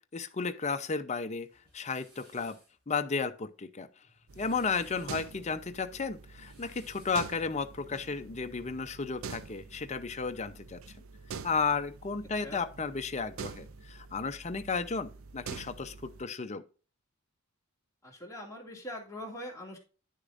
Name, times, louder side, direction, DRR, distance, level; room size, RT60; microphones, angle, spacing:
voice 1, 0.1-1.5 1.7-2.6 2.9-3.9 4.4-10.8 11.4-16.6, left 4 dB, 30° left, 0.6 m, -33 dB
sound 1, 1.4-2.7 4.1-5.2 6.2-7.3, right 1 dB, 50° right, 4.6 m, -60 dB
sound 2, 4.0-6.0 7.7-9.8 11.4-13.4, right 2 dB, 20° right, 3.7 m, -64 dB
sound 3, 4.3-16.2, right 5 dB, 65° right, 0.5 m, -46 dB
voice 2, 18.0-19.8, equal, 15° left, 2.3 m, -42 dB
10.0 x 6.7 x 2.5 m
head